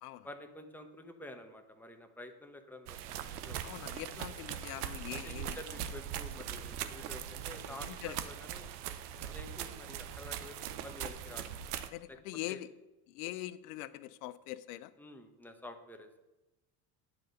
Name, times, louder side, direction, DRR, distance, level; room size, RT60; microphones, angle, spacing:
voice 1, 0.2-3.7 5.1-8.7 9.3-11.5 12.1-12.2 12.5-12.6 15.0-16.2, left 1 dB, 5° left, 5 dB, 0.9 m, -49 dB
sound 1, 2.9-11.9, right 10 dB, 85° right, 0.7 m, -41 dB
voice 2, 3.6-5.6 7.6-8.2 11.9-12.7 13.1-14.9, left 15 dB, 80° left, 14 dB, 0.6 m, -43 dB
9.2 x 3.9 x 6.7 m, 1.0 s
hypercardioid pair, 80°, 45 cm